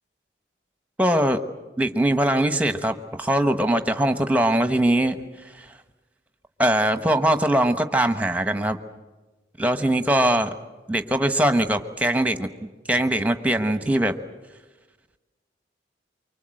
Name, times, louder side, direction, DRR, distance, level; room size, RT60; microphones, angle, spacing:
voice 1, 1.0-1.4 1.8-5.2 5.6-5.7 6.6-8.8 9.6-10.5 10.9-12.5 12.9-14.2, right 1 dB, 10° right, 9 dB, 1.1 m, -21 dB
24.5 x 24.5 x 7.8 m, 1.2 s
head